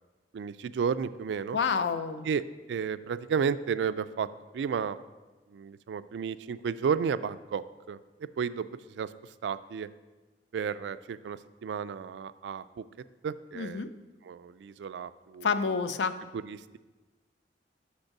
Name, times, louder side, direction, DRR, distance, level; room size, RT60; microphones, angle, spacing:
voice 1, 0.3-1.6 2.2-4.3 4.5-5.0 5.5-9.1 9.4-9.9 10.5-12.8 13.2-13.9 14.2-15.5 16.3-16.6, right 6 dB, 75° right, 15 dB, 0.3 m, -32 dB
voice 2, 1.5-2.3 13.5-13.9 15.4-16.2, left 5 dB, 75° left, 12 dB, 0.5 m, -28 dB
6.7 x 5.3 x 5.8 m, 1.2 s
head